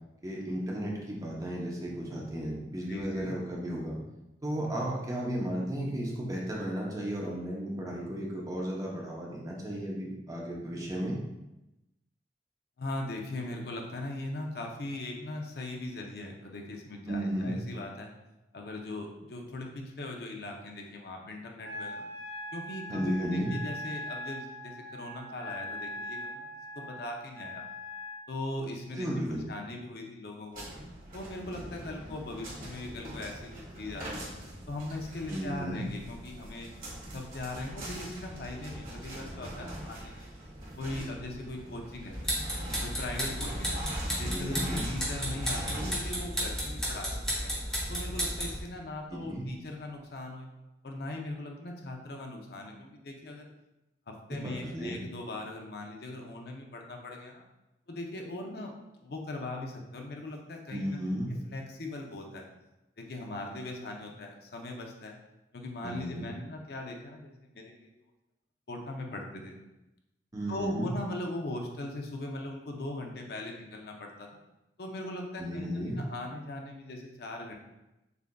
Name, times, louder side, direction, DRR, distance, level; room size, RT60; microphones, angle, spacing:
voice 1, 0.2-4.0 4.4-11.2 17.1-17.6 22.9-23.5 28.9-29.4 35.3-35.9 44.3-44.9 49.1-49.5 54.3-55.0 60.7-61.3 65.8-66.3 70.3-70.9 75.4-76.0, equal, 20° right, -3 dB, 0.7 m, -34 dB
voice 2, 2.9-3.4 12.8-18.1 18.5-22.1 22.5-26.5 26.7-27.6 28.3-29.1 29.5-30.7 31.1-34.3 34.7-36.7 37.1-40.3 40.8-42.2 42.8-43.8 44.2-47.5 47.9-50.5 50.8-53.5 54.1-57.4 57.9-58.7 59.0-61.1 61.4-62.5 63.0-65.1 65.5-67.9 68.7-69.6 70.5-74.4 74.8-77.5, left 2 dB, 60° left, 1 dB, 0.6 m, -39 dB
Wind instrument woodwind instrument, 21.6-28.2, left 1 dB, 70° right, 0.8 m, -41 dB
sound 1, 30.5-49.3, right 1 dB, 50° right, 1.4 m, -42 dB
sound 2, 42.1-48.6, equal, 5° left, 1.0 m, -33 dB
6.7 x 2.5 x 2.2 m, 0.95 s
head